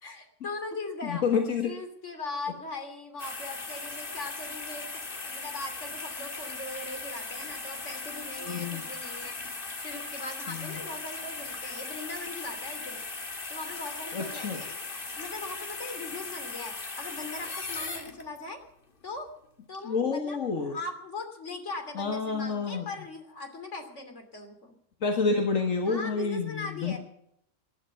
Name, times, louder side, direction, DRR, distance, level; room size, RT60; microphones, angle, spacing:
voice 1, 0.0-1.2 1.6-9.5 9.8-13.0 13.5-18.6 19.0-19.3 19.7-24.8 25.8-27.0, left 3 dB, 65° left, 6 dB, 3.2 m, -40 dB
voice 2, 1.0-1.7 8.4-8.9 10.5-10.8 14.1-14.6 19.8-20.8 22.0-22.8 25.0-27.0, left 4 dB, 85° left, 3 dB, 2.1 m, -29 dB
sound 1, 3.2-18.5 19.0-19.1, left 3 dB, 45° left, 2.0 m, -38 dB
20.0 x 11.5 x 5.8 m, 0.73 s
omnidirectional pair, 1.3 m